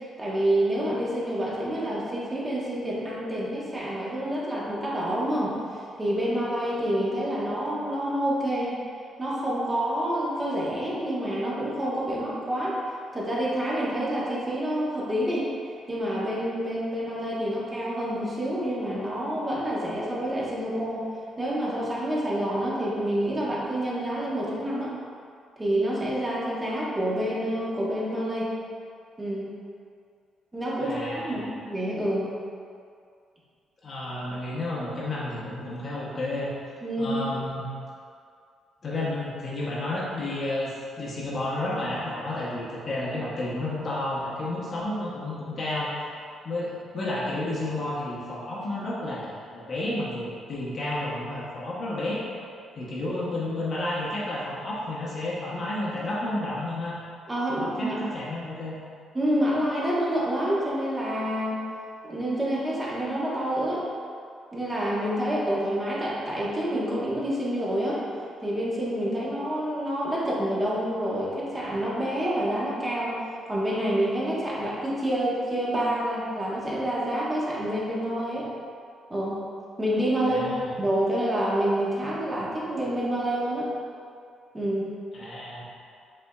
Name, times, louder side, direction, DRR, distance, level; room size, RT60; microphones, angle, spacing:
voice 1, 0.2-8.8 9.2-12.8 13.1-15.5 15.9-21.1 21.4-24.9 25.6-28.5 29.2-29.5 30.5-32.3 36.8-37.2 57.3-58.0 59.1-61.6 62.0-63.8 64.5-68.0 68.4-73.2 73.5-78.5 79.1-79.4 79.8-80.4 80.8-83.7 84.5-84.9, right 1 dB, 20° right, -6 dB, 1.1 m, -28 dB
voice 2, 30.8-31.5 33.8-36.5 37.0-37.7 38.8-45.9 46.4-52.2 52.8-56.9 57.5-58.8 80.2-80.7 85.1-85.7, left 1 dB, 45° left, -7 dB, 0.9 m, -31 dB
5.3 x 3.5 x 2.3 m, 2.3 s
cardioid pair, 90°, 0 cm